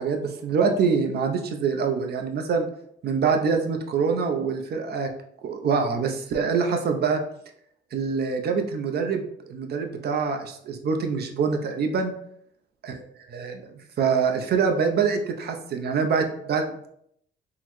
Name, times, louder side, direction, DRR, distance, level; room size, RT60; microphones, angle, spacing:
voice 1, 0.0-2.7 3.0-5.1 5.4-7.2 7.9-12.1 13.3-13.7 14.0-16.9, right 5 dB, 55° right, 5 dB, 0.5 m, -25 dB
3.7 x 2.0 x 3.0 m, 0.71 s
cardioid pair, 90°, 20 cm